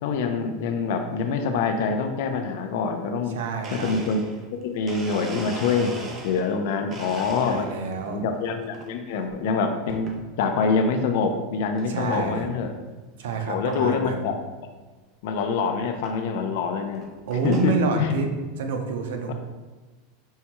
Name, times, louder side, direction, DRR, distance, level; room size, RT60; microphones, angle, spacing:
voice 1, 0.0-3.4 3.7-4.2 4.6-5.9 6.2-7.7 8.1-12.7 13.5-14.4 15.2-17.0 17.4-18.1 19.3-19.4, left 5 dB, 65° left, 6 dB, 0.4 m, -25 dB
voice 2, 3.3-3.9 7.4-8.2 11.9-12.5 13.2-14.3 17.3-18.3 18.6-19.3, right 4 dB, 85° right, 4 dB, 0.6 m, -28 dB
Domestic sounds home sounds, 3.6-6.6 6.9-7.9 8.4-8.9 9.9-10.2 10.8-10.9 11.8-11.9 12.1-12.5 12.9-13.0 13.2-13.3 13.7-13.8 15.1-15.2 16.0-16.2 16.8-17.8, right 2 dB, 25° right, 0.5 m, -39 dB
5.4 x 2.2 x 2.9 m, 1.3 s
supercardioid pair, 155°, 0 cm